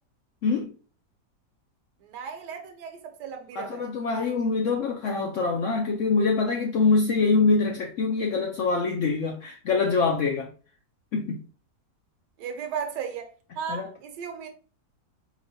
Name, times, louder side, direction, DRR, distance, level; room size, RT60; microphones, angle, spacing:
voice 1, 0.4-0.7 3.6-10.5 11.1-11.4 13.7-13.9, left 4 dB, 75° left, 0.7 m, -24 dB
voice 2, 2.0-3.8 12.4-14.5, right 7 dB, 85° right, 1.3 m, -35 dB
4.4 x 2.9 x 2.7 m
omnidirectional pair, 1.8 m